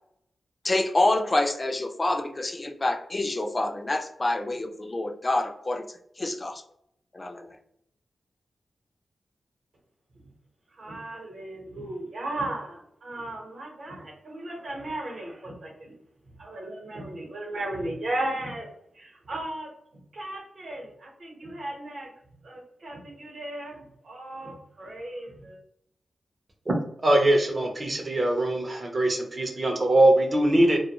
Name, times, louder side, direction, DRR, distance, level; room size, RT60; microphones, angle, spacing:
voice 1, 0.6-6.6 7.1-7.6, left 2 dB, 25° left, 4 dB, 0.3 m, -27 dB
voice 2, 10.7-15.9 16.2-18.7 18.9-22.1 22.4-25.6, right 1 dB, 60° right, -1 dB, 0.9 m, -36 dB
voice 3, 27.0-30.8, right 1 dB, 30° right, 2 dB, 0.5 m, -22 dB
2.3 x 2.2 x 2.9 m, 0.70 s
wide cardioid pair, 130°, 0 cm